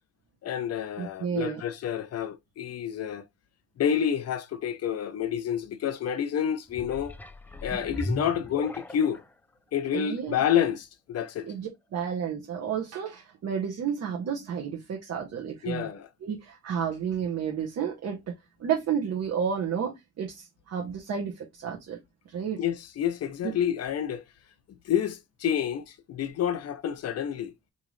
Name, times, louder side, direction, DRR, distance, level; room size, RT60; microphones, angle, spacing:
voice 1, 0.4-3.2 3.8-7.2 7.6-9.2 9.7-11.5 15.6-16.1 22.6-24.2 24.8-27.5, left 9 dB, 55° left, 0.6 m, -29 dB
voice 2, 1.0-1.6 9.9-10.4 11.4-15.9 16.2-18.2 18.6-22.0 22.3-22.6 23.4-23.5, right 7 dB, 60° right, 0.9 m, -31 dB
sound 1, 6.7-9.3 9.9-10.0, left 1 dB, 5° left, 0.3 m, -37 dB
3.8 x 2.8 x 3.1 m
cardioid pair, 90°, 30 cm